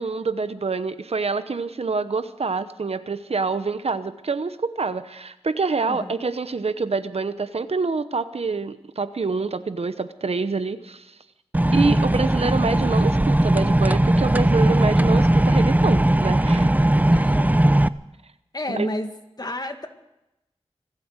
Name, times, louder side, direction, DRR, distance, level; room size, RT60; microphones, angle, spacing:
voice 1, 0.0-11.1 11.7-16.7 18.7-18.9, right 4 dB, 80° right, 12 dB, 0.9 m, -26 dB
sound 1, 11.5-17.9, right 1 dB, 15° right, 0.5 m, -18 dB
voice 2, 11.6-12.1 17.1-17.6 18.5-19.1 19.4-19.9, left 1 dB, 40° left, 6 dB, 2.0 m, -31 dB
25.0 x 8.6 x 6.6 m, 0.89 s
wide cardioid pair, 50°, 10 cm